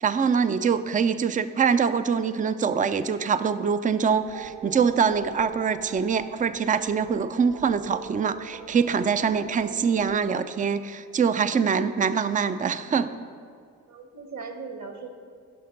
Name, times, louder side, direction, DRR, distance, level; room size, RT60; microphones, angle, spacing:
voice 1, 0.0-13.1, right 6 dB, 20° right, 12 dB, 0.4 m, -24 dB
sound 1, 4.0-10.2, right 6 dB, 75° right, 0.7 m, -42 dB
voice 2, 13.9-15.1, right 5 dB, 45° right, 6 dB, 1.3 m, -39 dB
11.0 x 5.6 x 5.3 m, 2.2 s
hypercardioid pair, 50°, 41 cm